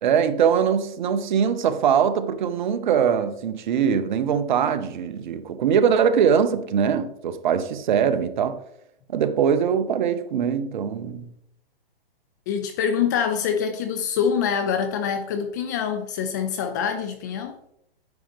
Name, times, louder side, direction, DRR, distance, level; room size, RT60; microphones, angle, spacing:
voice 1, 0.0-8.6 9.1-11.3, right 7 dB, 50° right, 0.8 m, -22 dB
voice 2, 12.5-17.6, left 7 dB, 20° left, 0.4 m, -25 dB
9.5 x 6.4 x 3.4 m
hypercardioid pair, 145°, 30 cm